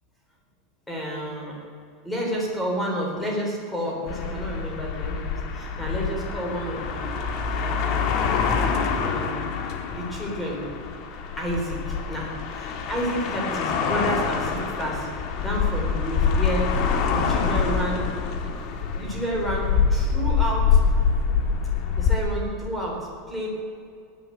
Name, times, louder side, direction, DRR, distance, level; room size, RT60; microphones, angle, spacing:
voice 1, 0.9-1.6 2.0-7.1 7.6-8.1 9.0-9.5 9.9-10.7 11.4-15.1 15.4-18.1 18.9-20.8 21.9-23.5, equal, 5° left, -2 dB, 3.8 m, -30 dB
sound 1, 4.1-22.2, left 6 dB, 40° left, 1.6 m, -25 dB
18.0 x 10.0 x 7.9 m, 2.3 s
supercardioid pair, 170°, 0 cm